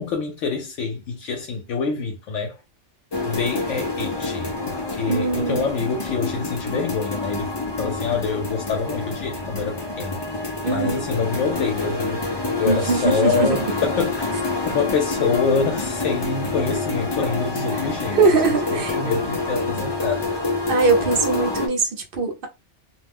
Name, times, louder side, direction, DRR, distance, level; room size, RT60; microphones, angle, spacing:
voice 1, 0.0-2.6 3.2-7.5 7.8-10.2 10.7-12.2 12.6-18.4 18.7-20.3, left 5 dB, 80° left, 0.9 m, -26 dB
sound 1, 3.1-21.7, left 3 dB, 30° left, 0.5 m, -27 dB
voice 2, 5.1-5.6 10.6-11.1 12.6-13.6 18.1-18.9 20.7-22.5, right 4 dB, 55° right, 0.7 m, -21 dB
2.4 x 2.0 x 3.4 m
omnidirectional pair, 1.2 m